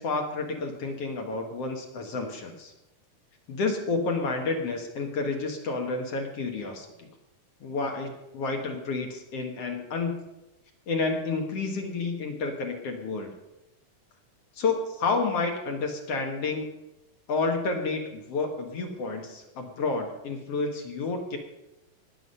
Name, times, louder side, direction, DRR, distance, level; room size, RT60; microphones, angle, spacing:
voice 1, 0.0-2.7 3.5-7.1 7.6-10.3 10.9-13.3 14.6-16.7 17.3-21.4, left 3 dB, 55° left, 3 dB, 2.0 m, -30 dB
19.5 x 7.1 x 5.5 m, 0.94 s
omnidirectional pair, 3.8 m